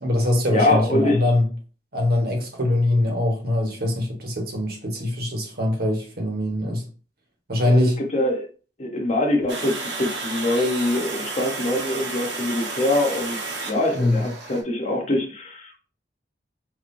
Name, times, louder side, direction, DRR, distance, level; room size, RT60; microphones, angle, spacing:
voice 1, 0.0-1.5 1.9-6.8 7.5-8.0 13.9-14.2, left 1 dB, 60° right, 1.2 m, -22 dB
voice 2, 0.5-1.2 7.7-8.5 8.8-13.4 13.7-15.8, left 1 dB, 40° left, 1.0 m, -24 dB
Water, 9.5-14.6, right 3 dB, 90° right, 1.2 m, -32 dB
5.3 x 3.1 x 2.6 m
head